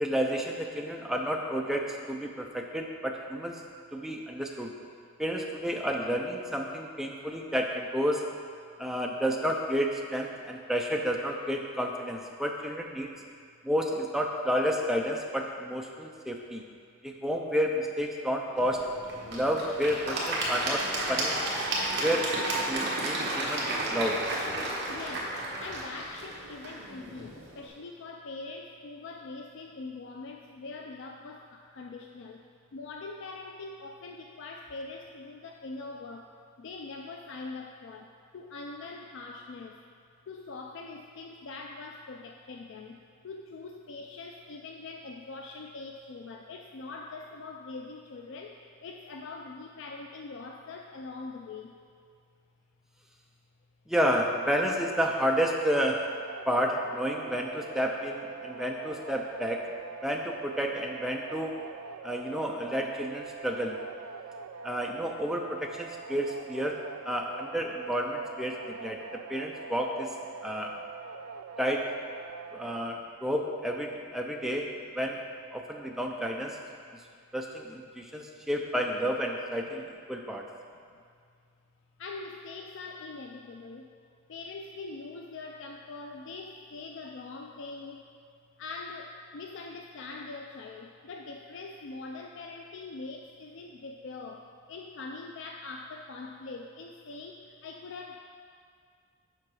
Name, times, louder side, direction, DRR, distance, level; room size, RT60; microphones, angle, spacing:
voice 1, 0.0-3.6 3.9-4.7 5.2-8.3 8.8-13.1 13.6-16.6 17.0-18.9 19.3-21.4 22.0-22.3 22.7-24.2 53.9-56.0 56.5-59.7 60.0-61.5 62.0-63.8 64.6-66.8 67.0-69.0 69.3-70.1 70.4-70.7 71.6-72.0 72.5-74.7 74.9-75.2 75.5-76.6 77.3-80.5, equal, ahead, 1 dB, 0.4 m, -30 dB
Applause / Crowd, 18.6-27.6, right 1 dB, 50° right, 1.3 m, -32 dB
voice 2, 24.9-25.3 25.6-31.4 31.7-32.4 32.7-36.3 36.6-38.1 38.3-39.8 40.3-43.0 43.2-48.5 48.8-51.7 82.0-83.9 84.3-88.0 88.6-97.4 97.6-98.2, left 3 dB, 60° left, 2 dB, 0.4 m, -42 dB
sound 1, 54.8-72.8, right 5 dB, 90° right, 0.3 m, -44 dB
7.4 x 5.1 x 4.7 m, 2.2 s
head